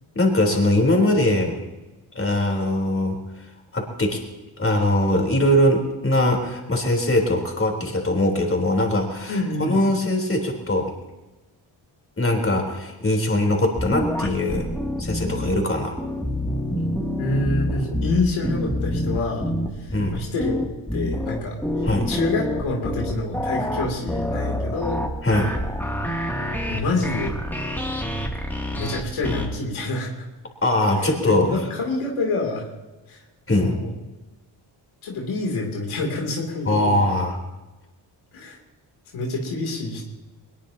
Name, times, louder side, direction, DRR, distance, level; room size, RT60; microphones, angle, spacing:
voice 1, 0.2-1.6 2.1-3.2 3.7-4.2 4.6-10.9 12.2-14.7 15.0-16.0 19.9-20.1 21.8-22.1 25.2-25.5 30.6-31.5 33.5-33.8 36.7-37.4, left 1 dB, 25° left, 1 dB, 4.0 m, -21 dB
voice 2, 9.3-9.8 17.2-20.6 20.9-21.6 22.1-25.0 26.7-27.4 28.8-30.2 31.1-32.7 33.1-33.2 33.6-33.9 35.0-37.1 38.3-38.6 39.1-40.0, left 2 dB, 90° left, -1 dB, 3.2 m, -27 dB
sound 1, 13.8-15.5 16.0-29.5, left 1 dB, 5° left, 2.7 m, -27 dB
20.5 x 20.0 x 2.9 m, 1.1 s
cardioid pair, 60°, 47 cm